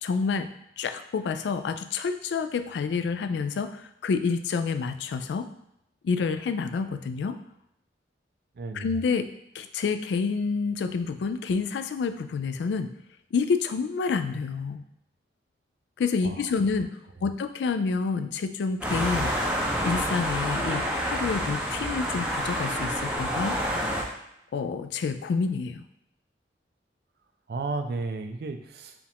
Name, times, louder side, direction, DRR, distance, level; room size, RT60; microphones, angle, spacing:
voice 1, 0.0-0.5 0.8-5.5 6.0-7.4 8.7-9.3 9.5-12.9 13.3-14.8 16.0-16.9 17.2-19.3 19.8-23.6 24.5-25.8, left 5 dB, 80° left, 9 dB, 0.3 m, -28 dB
voice 2, 8.6-8.9 16.2-16.5 27.5-28.9, right 3 dB, 60° right, 7 dB, 0.4 m, -33 dB
sound 1, 18.8-24.0, equal, 5° right, 0.5 m, -28 dB
4.9 x 2.4 x 3.5 m, 0.80 s
head